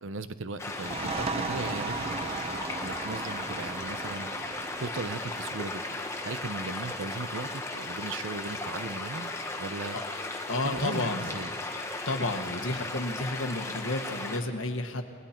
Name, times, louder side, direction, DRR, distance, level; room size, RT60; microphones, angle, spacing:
voice 1, 0.0-4.3 4.8-5.8 6.3-9.3 9.6-10.0 10.6-11.5, right 3 dB, 70° right, 13 dB, 0.7 m, -37 dB
sound 1, 0.6-14.4, left 2 dB, 15° left, 1.1 m, -36 dB
sound 2, 0.7-8.1, right 4 dB, 30° right, 0.8 m, -38 dB
voice 2, 10.5-11.3 12.0-15.0, left 2 dB, 85° left, 6 dB, 1.5 m, -31 dB
30.0 x 19.5 x 4.4 m, 2.2 s
head